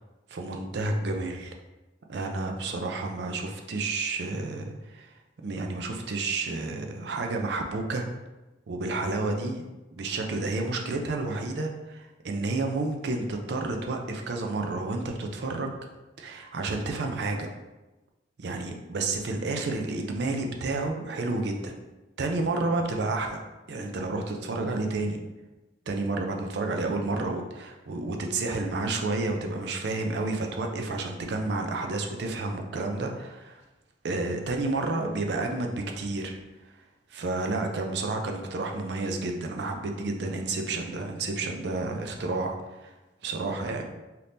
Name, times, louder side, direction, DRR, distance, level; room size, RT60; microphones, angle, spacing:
voice 1, 0.3-1.5 2.1-5.1 5.4-8.1 8.7-9.6 9.9-15.8 16.2-17.5 18.4-21.7 22.2-23.4 23.7-25.2 25.9-33.6 34.0-36.4 36.6-36.7 37.1-42.9 43.2-43.8, right 2 dB, 60° right, 3 dB, 0.4 m, -30 dB
2.8 x 2.5 x 3.4 m, 1.1 s
head